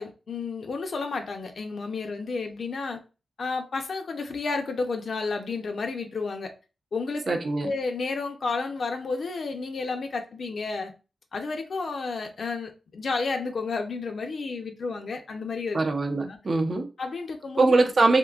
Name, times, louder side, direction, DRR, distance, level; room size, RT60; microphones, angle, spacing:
voice 1, 0.0-3.0 3.4-6.5 6.9-7.4 7.6-10.9 11.3-15.8 16.2-16.4 17.0-17.8, left 4 dB, 60° left, 0.6 m, -31 dB
voice 2, 7.3-7.7 15.7-16.9 17.6-18.2, right 3 dB, 45° right, 0.6 m, -22 dB
3.7 x 2.7 x 2.4 m
wide cardioid pair, 125°, 0 cm